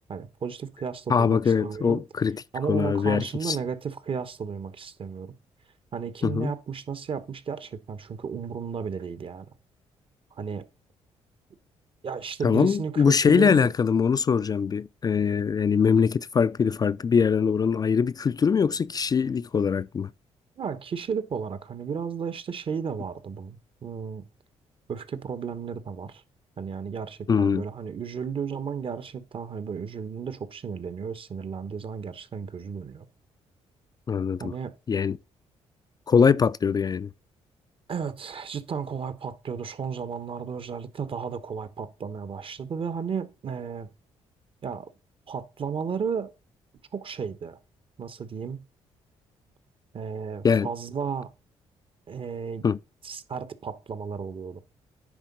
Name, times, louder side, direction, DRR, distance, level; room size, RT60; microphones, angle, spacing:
voice 1, 0.1-2.0 2.5-5.3 5.9-9.5 10.4-10.6 12.0-13.7 20.6-24.2 24.9-26.2 26.6-33.1 34.4-34.7 37.9-43.9 44.6-44.9 45.3-46.3 46.9-47.6 48.0-48.6 49.9-51.3 52.1-52.6 53.0-54.6, right 6 dB, 50° right, 1.0 m, -33 dB
voice 2, 1.1-2.4 2.7-3.6 6.2-6.5 12.4-20.1 27.3-27.6 34.1-34.5 34.9-35.2 36.1-37.1 50.4-50.7 52.6-52.8, left 6 dB, 35° left, 0.3 m, -22 dB
10.0 x 3.6 x 5.3 m
cardioid pair, 75°, 12 cm